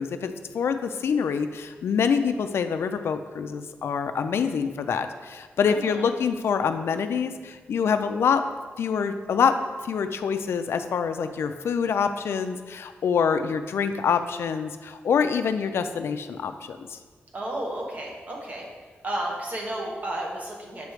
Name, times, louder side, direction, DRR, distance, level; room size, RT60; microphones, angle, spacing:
voice 1, 0.0-8.4 8.8-9.6 9.8-17.0, left 6 dB, 70° left, 8 dB, 0.3 m, -26 dB
voice 2, 5.7-6.1 17.3-18.7 19.0-20.9, right 1 dB, 40° right, -1 dB, 1.1 m, -32 dB
6.7 x 3.1 x 4.8 m, 1.4 s
wide cardioid pair, 135°, 4 cm